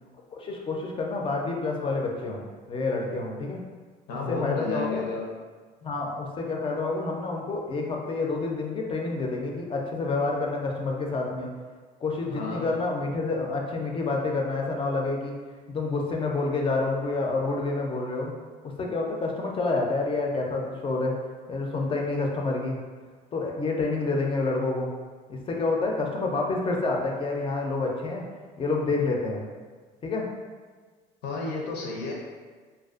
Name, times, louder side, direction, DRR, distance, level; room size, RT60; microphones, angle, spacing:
voice 1, 0.3-3.6 4.3-5.0 5.8-11.5 12.0-15.3 15.7-18.3 18.6-21.2 21.5-22.8 23.3-24.9 25.3-28.3 28.6-29.4 30.0-30.3, left 3 dB, 30° left, 0 dB, 0.4 m, -28 dB
voice 2, 4.1-5.2 12.3-12.7 31.2-32.1, left 3 dB, 80° left, -2 dB, 0.6 m, -31 dB
2.4 x 2.2 x 2.4 m, 1.5 s
cardioid pair, 110°, 17 cm